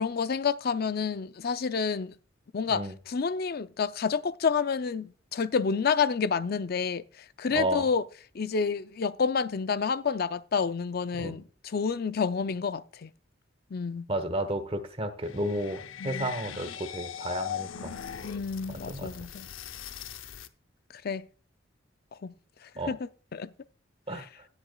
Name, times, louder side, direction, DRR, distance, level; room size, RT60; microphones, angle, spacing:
voice 1, 0.0-2.1 2.5-8.0 8.3-13.1 13.7-14.1 16.0-16.3 18.2-19.5 21.0-21.2 22.2-22.3 22.9-23.5 24.1-24.3, left 5 dB, 50° left, 0.5 m, -29 dB
voice 2, 7.5-7.9 11.2-11.3 14.1-17.9 18.7-19.1 22.8-22.9 24.1-24.2, right 1 dB, 30° right, 1.2 m, -32 dB
sound 1, 15.2-20.5, left 9 dB, 85° left, 0.7 m, -40 dB
17.5 x 8.0 x 2.3 m
head